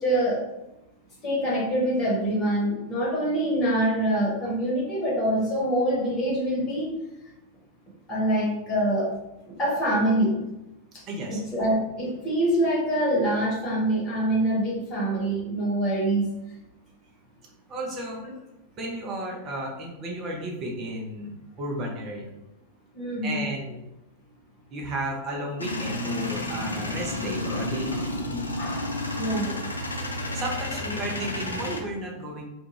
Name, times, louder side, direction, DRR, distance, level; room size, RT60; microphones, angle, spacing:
voice 1, 0.0-0.4 1.2-6.9 8.1-9.1 9.5-10.4 11.5-16.3 22.9-23.4 27.5-27.7 28.6-29.6 30.3-30.4, right 1 dB, 30° left, -4 dB, 1.1 m, -25 dB
voice 2, 11.1-11.4 17.7-18.3 18.8-22.3 23.2-23.9 24.7-28.0 30.3-32.4, right 1 dB, 30° right, -1 dB, 0.7 m, -33 dB
Male speech man speaking / Vehicle / Engine starting, 25.6-31.8, left 2 dB, 80° left, 0.3 m, -31 dB
2.4 x 2.3 x 3.1 m, 0.93 s
figure-of-eight pair, 90°, 0 cm